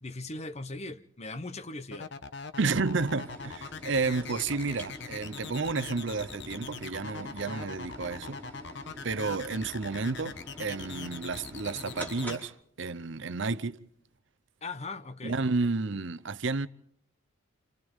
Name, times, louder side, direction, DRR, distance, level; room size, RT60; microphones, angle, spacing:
voice 1, 0.0-2.1 14.6-15.4, left 2 dB, 30° left, 0.9 m, -39 dB
sound 1, 1.9-12.4, left 5 dB, 60° left, 1.1 m, -41 dB
voice 2, 2.6-8.4 9.0-12.5 12.8-13.8 15.2-16.7, right 3 dB, 60° right, 0.8 m, -31 dB
sound 2, 3.2-12.4, equal, 10° left, 4.9 m, -46 dB
29.0 x 28.0 x 3.7 m
head